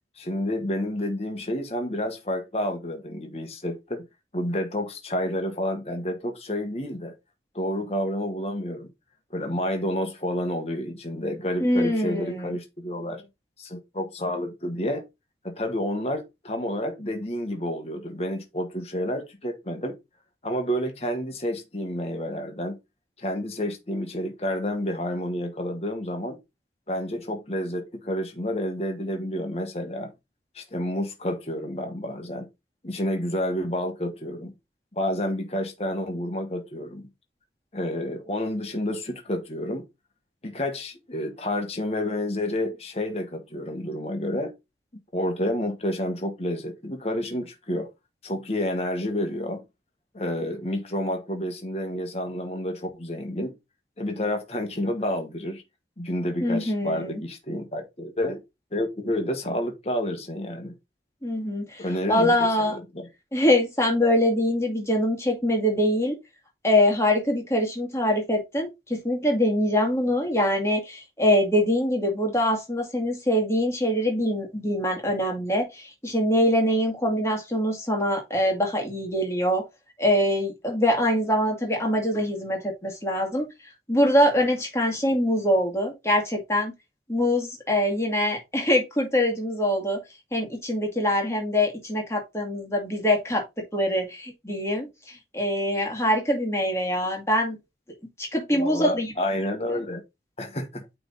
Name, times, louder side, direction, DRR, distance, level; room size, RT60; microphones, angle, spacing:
voice 1, 0.2-4.1 4.3-7.1 7.5-8.9 9.3-13.3 13.6-15.0 15.4-20.0 20.4-22.8 23.2-26.4 26.9-30.1 30.5-32.5 32.8-34.5 34.9-37.1 37.7-39.8 40.4-44.5 44.9-47.9 48.2-49.6 50.1-53.5 54.0-55.6 56.0-58.4 58.7-60.7 61.8-63.1 98.5-100.0 100.4-100.9, left 1 dB, 35° left, 1.3 m, -29 dB
voice 2, 11.6-12.6 56.4-57.2 61.2-62.8 63.3-66.2 66.6-79.6 80.0-83.5 83.9-86.7 87.1-90.0 90.3-93.4 93.7-94.9 95.3-97.6 98.2-99.1, left 1 dB, 15° left, 2.1 m, -24 dB
8.8 x 3.5 x 3.8 m
head